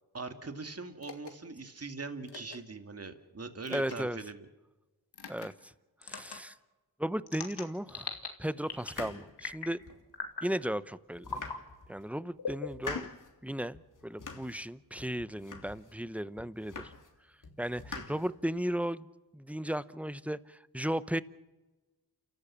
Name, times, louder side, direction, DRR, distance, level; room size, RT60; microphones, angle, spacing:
voice 1, 0.1-4.5 18.1-18.2, right 3 dB, 40° right, 8 dB, 2.2 m, -42 dB
sound 1, 1.0-1.3 2.3-2.6 3.6-4.0 5.1-5.5 6.0-6.4 7.3-8.3 8.6-9.0 9.4-9.8 10.1-10.5 11.2-11.6 12.4-13.3, left 5 dB, 85° left, 2.4 m, -40 dB
voice 2, 3.7-4.2 5.3-5.7 6.0-6.5 7.0-8.1 8.4-9.8 10.4-11.4 11.9-13.1 13.4-16.9 17.6-21.2, equal, 5° right, 16 dB, 0.9 m, -35 dB
sound 2, 8.8-10.1 10.6-10.7 11.1-12.1 12.5-13.3 13.7-14.6 15.0-16.0 16.4-17.2 17.4-18.7, left 4 dB, 50° left, 3.0 m, -45 dB
29.0 x 13.5 x 7.4 m, 1.2 s
cardioid pair, 50°, 38 cm